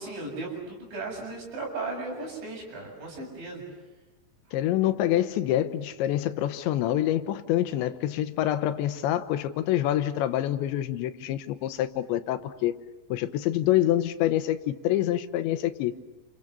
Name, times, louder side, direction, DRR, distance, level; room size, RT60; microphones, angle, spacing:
voice 1, 0.0-3.6, right 3 dB, 75° right, -1 dB, 9.7 m, -36 dB
voice 2, 4.5-12.7 13.1-15.9, left 13 dB, 80° left, 11 dB, 3.3 m, -26 dB
29.5 x 28.0 x 6.8 m, 1.1 s
omnidirectional pair, 5.2 m